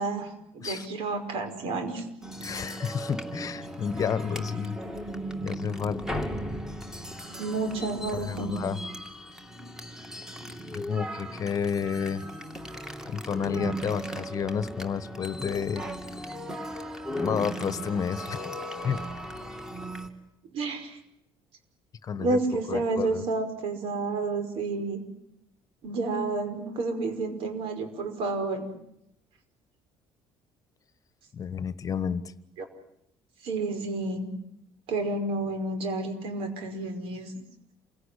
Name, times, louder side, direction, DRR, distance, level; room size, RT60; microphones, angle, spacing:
voice 1, 0.0-2.1 7.4-8.6 20.5-21.0 22.2-25.0 25.8-28.7 33.4-34.3 34.9-37.3, right 3 dB, 75° right, 7 dB, 5.3 m, -30 dB
sound 1, 2.2-20.1, right 1 dB, 5° right, 2.6 m, -37 dB
voice 2, 2.4-4.8 5.4-6.2 8.1-8.8 10.7-12.2 13.1-15.8 17.2-18.5 18.8-19.0 22.0-22.4 22.7-23.2 31.3-32.2, left 7 dB, 35° left, 15 dB, 1.2 m, -30 dB
28.0 x 17.0 x 9.9 m, 0.78 s
cardioid pair, 120°, 10 cm